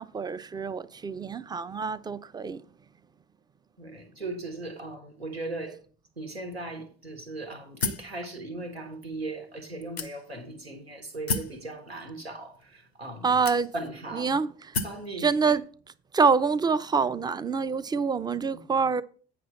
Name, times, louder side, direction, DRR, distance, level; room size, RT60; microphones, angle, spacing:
voice 1, 0.0-2.6 13.2-13.7 14.1-14.5 15.2-15.6 16.1-19.0, right 5 dB, 15° right, 0.4 m, -26 dB
voice 2, 3.8-5.8 6.2-13.4 13.7-14.4 14.8-15.6 18.3-18.6, right 2 dB, 90° right, 1.2 m, -38 dB
sound 1, 7.8-8.2 8.9-9.0 10.0-10.5 11.3-11.6 12.5-12.6 13.4-14.0 14.7-15.1, left 4 dB, 90° left, 0.6 m, -31 dB
8.6 x 6.0 x 4.0 m
figure-of-eight pair, 55°, 30 cm